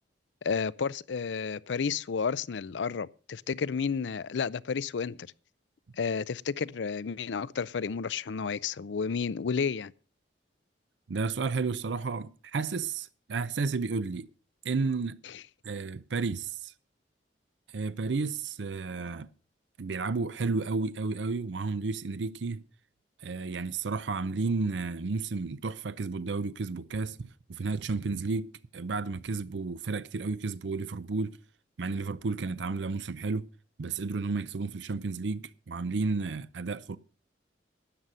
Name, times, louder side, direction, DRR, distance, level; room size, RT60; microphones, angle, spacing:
voice 1, 0.4-5.2 6.0-9.9, left 6 dB, 90° left, 0.5 m, -31 dB
voice 2, 11.1-14.3 14.6-15.2 15.6-16.7 17.7-19.3 19.8-22.6 23.2-31.4 31.8-33.5 33.8-37.0, right 4 dB, 85° right, 0.6 m, -32 dB
12.5 x 9.0 x 5.5 m
head